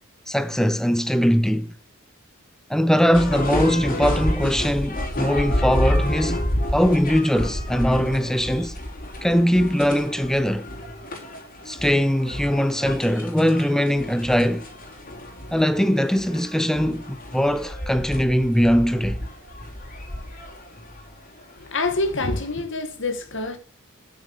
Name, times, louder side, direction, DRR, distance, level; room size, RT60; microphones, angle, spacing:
voice 1, 0.3-1.7 2.7-6.4 6.7-8.8 9.2-10.7 11.7-14.7 15.5-19.2, equal, ahead, 0.6 m, -21 dB
sound 1, 3.1-22.5, left 1 dB, 40° left, 4.4 m, -30 dB
voice 2, 21.5-23.6, left 2 dB, 60° left, 2.2 m, -26 dB
10.5 x 7.3 x 6.7 m
head